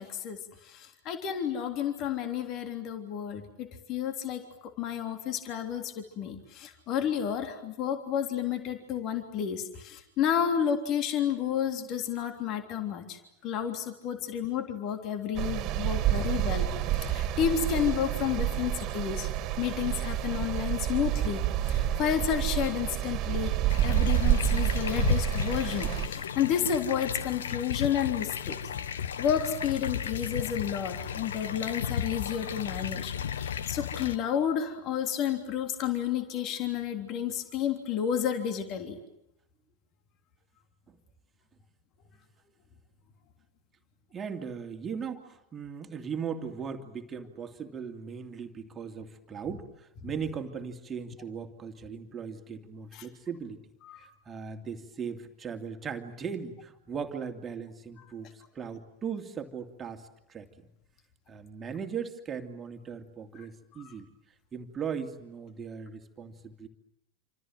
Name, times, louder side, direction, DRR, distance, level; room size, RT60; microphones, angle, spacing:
voice 1, 0.0-19.3 19.6-23.6 23.8-28.6 28.9-39.0 52.9-53.1 53.8-54.1 63.3-63.5 63.7-63.9, left 9 dB, 35° left, 6 dB, 3.4 m, -31 dB
sound 1, 15.4-26.1, right 11 dB, 35° right, 2.7 m, -29 dB
sound 2, 23.7-34.2, left 8 dB, 65° left, 1.4 m, -34 dB
voice 2, 44.1-53.6 54.0-60.7 61.3-64.1 64.5-66.7, right 6 dB, 20° right, 5 dB, 2.8 m, -38 dB
28.5 x 27.0 x 7.8 m, 0.82 s
figure-of-eight pair, 90°, 0 cm